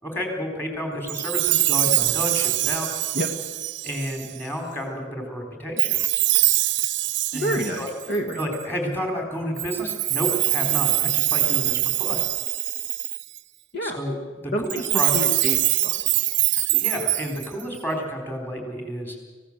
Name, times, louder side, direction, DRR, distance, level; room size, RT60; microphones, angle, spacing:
voice 1, 0.0-2.9 3.8-6.0 7.3-7.9 8.4-12.3 13.8-14.1 14.4-15.1 16.7-19.2, equal, 10° left, 2 dB, 4.1 m, -30 dB
Chime, 1.1-4.4 5.8-8.6 9.6-13.4 14.6-17.8, right 17 dB, 65° right, 0.7 m, -23 dB
voice 2, 7.3-8.4 13.7-14.0 14.5-16.0, equal, 55° left, 4 dB, 1.7 m, -28 dB
26.5 x 16.0 x 7.5 m, 1.5 s
head